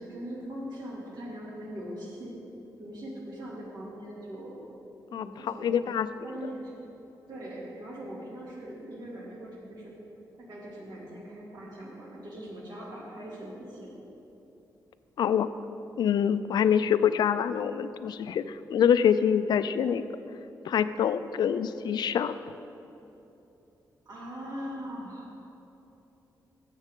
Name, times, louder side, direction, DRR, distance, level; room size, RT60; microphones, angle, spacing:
voice 1, 0.0-2.3 2.8-4.6 5.1-5.9 6.2-6.7 7.3-9.9 10.4-14.0 24.1-25.3, equal, 70° right, -4 dB, 2.6 m, -41 dB
voice 2, 5.6-6.1 15.2-15.5 16.0-20.0 20.7-22.3, left 8 dB, 75° left, 13 dB, 0.4 m, -25 dB
14.5 x 7.2 x 3.7 m, 2.9 s
wide cardioid pair, 145°, 7 cm